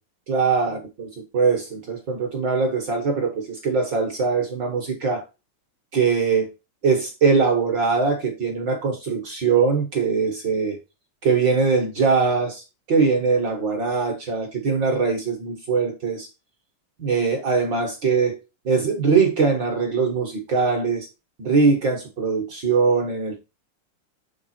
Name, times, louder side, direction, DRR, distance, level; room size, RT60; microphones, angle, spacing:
voice 1, 0.3-1.1 1.3-5.2 5.9-6.5 6.8-10.8 11.2-16.3 17.0-18.4 18.6-21.1 21.4-23.4, right 5 dB, 60° right, 2 dB, 1.2 m, -22 dB
8.0 x 3.7 x 4.3 m, 0.27 s
omnidirectional pair, 3.8 m